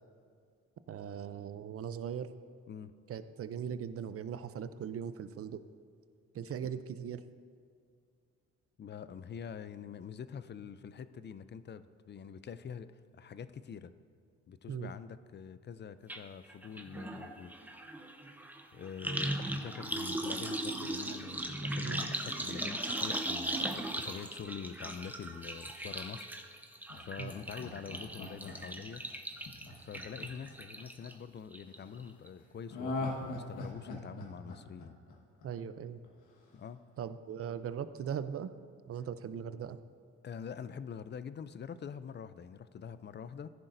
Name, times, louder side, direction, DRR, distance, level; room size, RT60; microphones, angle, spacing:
voice 1, 0.9-2.3 3.1-5.6 6.3-7.2 14.7-14.9 21.8-22.0 27.2-27.3 35.4-36.0 37.0-38.5 38.9-39.8, right 8 dB, 50° right, 12 dB, 0.6 m, -39 dB
voice 2, 8.8-13.9 14.5-17.5 18.7-26.3 26.6-26.7 27.0-29.1 29.7-35.0 36.5-36.8 40.2-43.5, left 7 dB, 35° left, 13 dB, 0.5 m, -45 dB
sound 1, 16.1-16.2 16.5-31.1 31.5-32.0 32.3-32.4, right 1 dB, 5° right, 0.8 m, -38 dB
Laughter, 26.9-31.1 32.7-35.7 36.0-36.1, left 2 dB, 85° left, 1.5 m, -41 dB
15.0 x 10.0 x 2.7 m, 2.2 s
cardioid pair, 90°, 30 cm